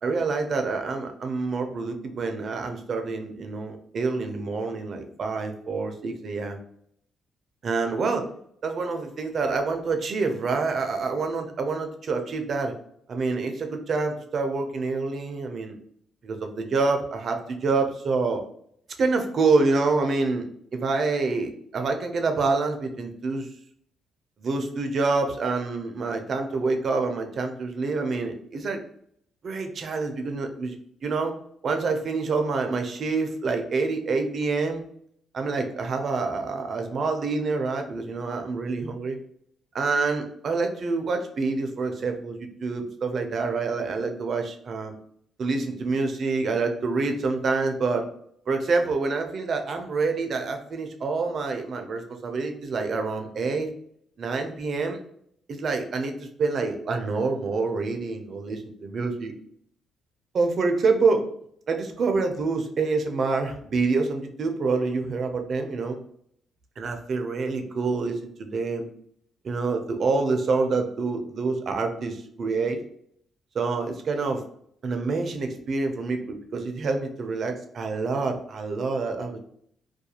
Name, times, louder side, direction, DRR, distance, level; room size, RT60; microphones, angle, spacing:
voice 1, 0.0-6.6 7.6-8.2 8.6-12.7 13.1-15.8 16.2-18.4 19.0-20.4 20.7-23.5 24.4-28.8 29.4-30.8 31.0-31.3 31.6-34.8 35.3-39.2 39.7-44.9 45.4-48.1 48.5-53.7 54.2-55.0 55.5-56.1 56.4-59.3 60.3-61.2 61.7-66.0 66.8-68.9 69.4-72.8 73.5-74.4 74.8-79.4, right 4 dB, 50° right, 5 dB, 0.4 m, -27 dB
2.3 x 2.2 x 2.8 m, 0.66 s
cardioid pair, 90°, 0 cm